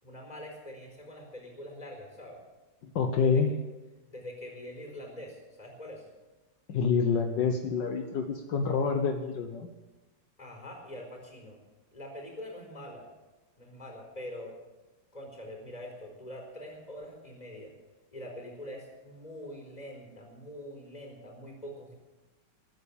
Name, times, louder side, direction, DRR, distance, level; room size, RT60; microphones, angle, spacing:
voice 1, 0.0-2.4 3.2-3.6 4.1-6.1 10.4-11.6 11.9-13.1 13.6-14.6 15.1-17.7 18.1-21.9, left 1 dB, 20° left, 2 dB, 4.6 m, -44 dB
voice 2, 2.8-3.5 6.7-9.7, left 5 dB, 75° left, 5 dB, 1.7 m, -27 dB
21.0 x 9.4 x 7.1 m, 1.1 s
omnidirectional pair, 2.0 m